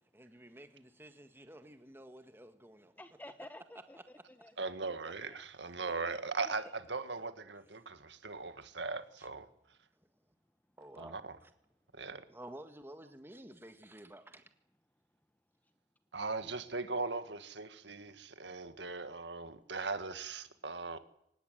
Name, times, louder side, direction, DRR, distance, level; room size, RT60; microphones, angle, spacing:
voice 1, 0.1-2.9 9.2-9.3 10.8-11.2 12.3-14.4, right 1 dB, 10° right, 8 dB, 1.7 m, -52 dB
voice 2, 3.0-4.0 4.3-4.6 5.3-5.4 6.0-6.6, left 1 dB, 10° left, 10 dB, 1.2 m, -51 dB
voice 3, 4.6-9.5 11.0-11.4 11.9-12.2 16.1-21.0, right 3 dB, 65° right, 10 dB, 2.0 m, -39 dB
24.5 x 19.0 x 9.3 m, 0.78 s
head